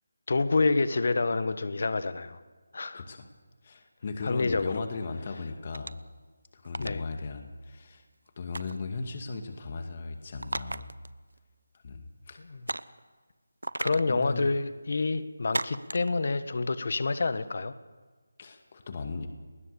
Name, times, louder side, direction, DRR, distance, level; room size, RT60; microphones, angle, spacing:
voice 1, 0.3-2.4 2.7-3.0 4.2-4.8 6.8-7.0 12.5-12.6 13.8-17.7, left 3 dB, 55° left, 12 dB, 1.5 m, -28 dB
voice 2, 2.9-3.3 3.6-6.0 6.5-8.0 8.4-10.9 11.8-12.4 13.9-14.5 18.4-19.3, left 4 dB, 40° left, 5 dB, 2.2 m, -37 dB
sound 1, 5.7-6.1 6.6-7.0 8.5-8.8 10.4-11.1 11.4-11.5 12.7-13.0 13.6-14.1 15.5-16.1, right 1 dB, 90° right, 1.0 m, -34 dB
30.0 x 20.5 x 7.0 m, 1.4 s
figure-of-eight pair, 160°, 0 cm